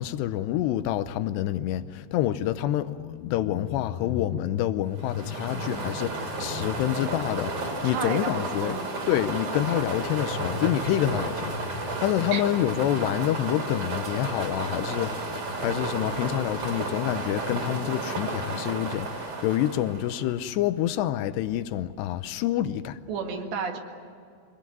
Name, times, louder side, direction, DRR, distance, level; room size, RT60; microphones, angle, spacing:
voice 1, 0.0-8.8 9.1-23.0, left 12 dB, 80° left, 2.7 m, -27 dB
sound 1, 4.9-20.4, right 2 dB, 40° right, 4.4 m, -32 dB
voice 2, 7.9-8.9 12.3-12.4 23.1-23.8, right 5 dB, 70° right, 4.0 m, -32 dB
25.0 x 19.5 x 9.3 m
omnidirectional pair, 5.3 m